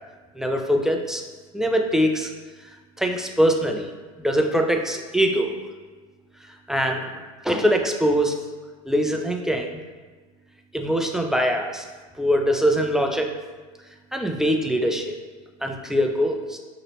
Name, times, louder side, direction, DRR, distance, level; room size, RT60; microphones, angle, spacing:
voice 1, 0.4-1.2 1.5-2.3 3.0-3.9 4.2-5.5 6.7-7.1 7.4-8.4 8.9-9.8 10.7-11.8 12.2-13.3 14.1-15.2 15.6-16.6, equal, ahead, 2 dB, 0.3 m, -22 dB
6.0 x 3.0 x 2.9 m, 1.4 s
supercardioid pair, 125°, 19 cm